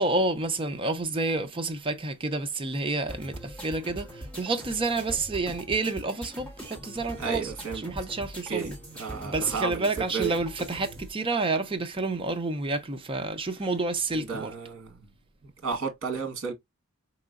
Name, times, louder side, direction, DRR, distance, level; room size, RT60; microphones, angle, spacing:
voice 1, 0.0-7.5 7.8-8.8 9.2-14.5, right 2 dB, 25° right, 0.5 m, -29 dB
sound 1, 3.1-11.1, right 1 dB, 5° left, 1.8 m, -42 dB
voice 2, 7.2-7.8 8.5-9.9 10.1-10.3 14.1-14.9 15.6-16.5, right 5 dB, 60° right, 1.5 m, -32 dB
4.5 x 3.0 x 2.4 m
head